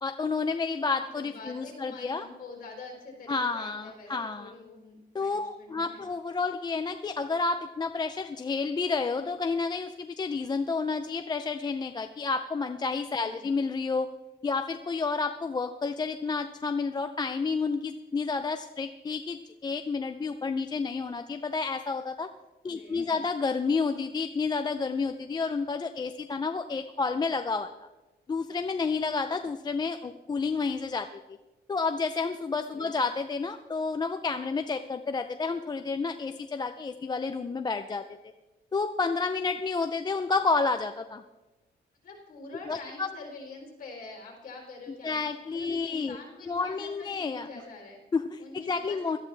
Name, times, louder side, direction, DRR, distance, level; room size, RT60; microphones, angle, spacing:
voice 1, 0.0-2.3 3.3-4.5 5.1-14.1 14.4-22.3 22.6-27.9 28.3-31.4 31.7-38.0 38.7-41.2 42.7-43.1 45.0-46.2 46.5-47.5 48.1-49.2, left 4 dB, 25° left, 8 dB, 0.4 m, -30 dB
voice 2, 1.0-6.0 13.2-13.5 22.7-23.2 32.8-33.0 42.0-45.2 45.5-48.0 48.4-49.2, left 3 dB, 50° left, 1 dB, 3.5 m, -46 dB
17.5 x 12.5 x 3.3 m, 1.1 s
wide cardioid pair, 155°, 18 cm